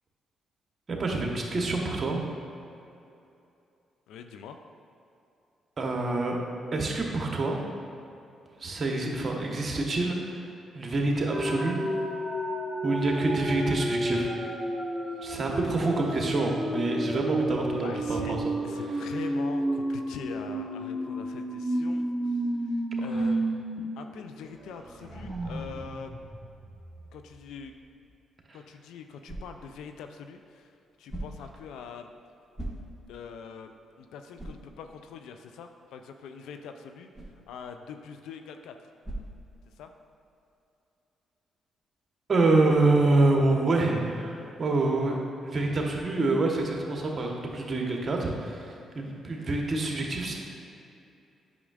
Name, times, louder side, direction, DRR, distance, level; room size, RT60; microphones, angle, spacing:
voice 1, 0.9-2.2 5.8-6.4 6.7-7.6 8.6-10.5 10.7-11.8 12.8-14.3 15.2-18.5 23.1-23.3 28.5-28.6 42.3-50.3, right 2 dB, 45° right, 0 dB, 1.2 m, -26 dB
voice 2, 4.1-4.6 15.1-15.4 17.8-18.4 18.6-23.5 24.0-26.1 27.1-27.7 28.5-32.1 33.1-37.1 37.5-38.9 39.7-39.9, left 6 dB, 75° left, 7 dB, 0.4 m, -43 dB
sound 1, 11.3-23.8 24.1-24.2 24.6-27.3, right 1 dB, 15° right, 1.4 m, -31 dB
sound 2, 28.4-40.1, right 1 dB, 5° left, 1.5 m, -46 dB
8.6 x 6.1 x 2.5 m, 2.7 s
hypercardioid pair, 50°, 0 cm